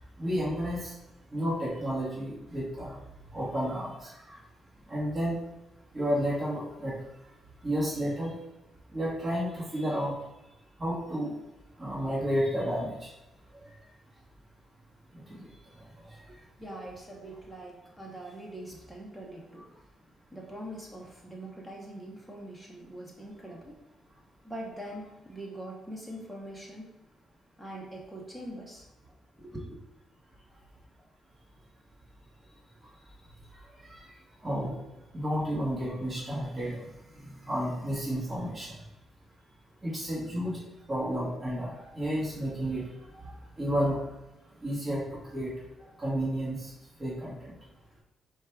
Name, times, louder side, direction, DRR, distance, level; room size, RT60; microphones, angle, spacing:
voice 1, 0.2-0.9 1.3-3.0 3.3-4.4 4.9-5.4 5.9-6.9 7.6-8.4 8.9-10.1 10.8-11.3 11.8-13.1 15.1-15.4 33.8-34.1 34.4-34.7 35.1-36.8 37.2-38.7 39.8-42.8 43.2-44.0 44.6-45.0 45.3-45.5 46.0-46.7 47.0-47.5, equal, 25° right, -8 dB, 1.4 m, -31 dB
voice 2, 16.3-19.9 20.3-23.9 24.4-27.0 27.6-28.9 29.4-29.8, right 1 dB, 5° right, -2 dB, 0.8 m, -43 dB
4.6 x 2.3 x 4.5 m, 0.95 s
cardioid pair, 90°, 0 cm